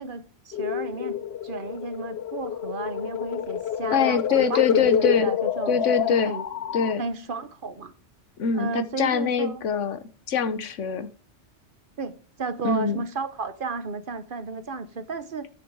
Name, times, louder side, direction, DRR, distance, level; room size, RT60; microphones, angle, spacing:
voice 1, 0.0-6.5 7.0-7.9 8.5-9.6 12.0-15.5, right 4 dB, 50° right, 1.0 m, -33 dB
sound 1, 0.5-6.9, left 9 dB, 65° left, 0.9 m, -28 dB
voice 2, 3.9-5.3 5.7-6.3 6.7-7.0 8.4-11.1 12.6-13.0, left 6 dB, 85° left, 1.3 m, -24 dB
9.8 x 6.5 x 4.7 m
omnidirectional pair, 1.2 m